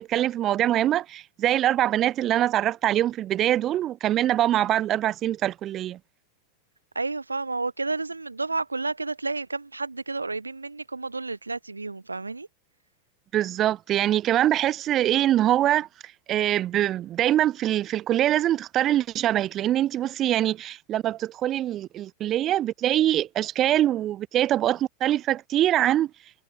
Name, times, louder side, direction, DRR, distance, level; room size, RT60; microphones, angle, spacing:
voice 1, 0.0-6.0 13.3-15.9 16.3-26.1, right 12 dB, 35° right, 0.3 m, -23 dB
voice 2, 6.9-12.5, right 3 dB, 90° right, 0.7 m, -31 dB
figure-of-eight pair, 90°, 0 cm